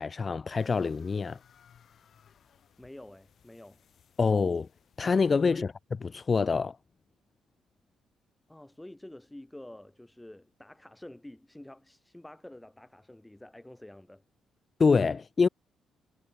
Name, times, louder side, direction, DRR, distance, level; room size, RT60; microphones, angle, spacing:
voice 1, 0.0-1.4 4.2-4.7 5.0-5.7 6.1-6.8 14.8-15.5, left 5 dB, 35° left, 0.4 m, -25 dB
sound 1, 0.6-5.8, left 8 dB, 60° left, 6.7 m, -62 dB
voice 2, 2.8-3.8 5.5-5.6 8.5-14.2, left 1 dB, 10° left, 0.9 m, -48 dB
cardioid pair, 90°, 0 cm